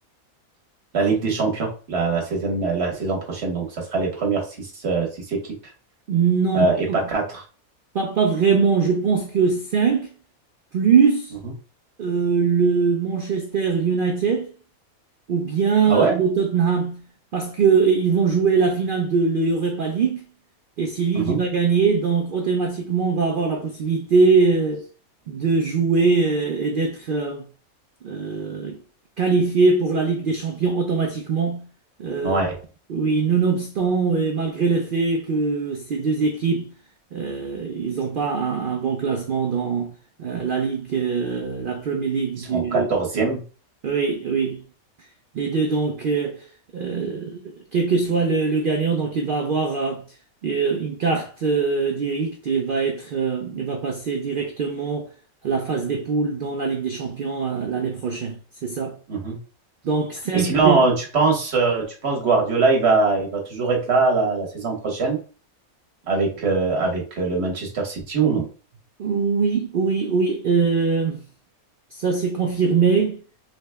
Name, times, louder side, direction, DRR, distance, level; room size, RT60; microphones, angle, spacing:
voice 1, 0.9-5.5 6.5-7.4 15.9-16.2 21.1-21.4 32.2-32.5 42.4-43.4 59.1-59.4 60.3-65.2 66.1-68.5, right 4 dB, 50° right, 1.3 m, -22 dB
voice 2, 6.1-7.0 7.9-10.1 10.7-11.3 12.0-14.5 15.3-17.0 17.3-20.3 20.8-24.9 25.3-27.4 28.0-28.8 29.2-31.7 32.0-32.4 32.9-36.7 37.1-39.9 40.2-42.9 43.1-43.3 43.8-44.6 45.3-46.5 46.7-50.0 50.4-55.1 55.4-59.0 59.8-60.9 69.0-71.2 71.9-73.2, right 5 dB, 85° right, 0.4 m, -22 dB
3.7 x 2.1 x 3.3 m
omnidirectional pair, 1.5 m